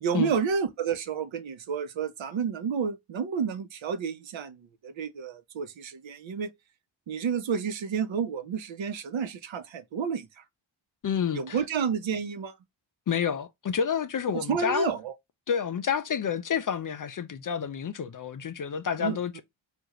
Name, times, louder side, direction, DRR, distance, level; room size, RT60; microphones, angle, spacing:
voice 1, 0.0-6.5 7.1-10.3 11.3-12.5 14.3-15.1 19.0-19.2, right 6 dB, 65° right, 0.9 m, -30 dB
voice 2, 11.0-11.6 13.1-14.9 15.5-19.4, left 7 dB, 40° left, 0.5 m, -29 dB
3.6 x 2.5 x 3.0 m
cardioid pair, 55°, 50 cm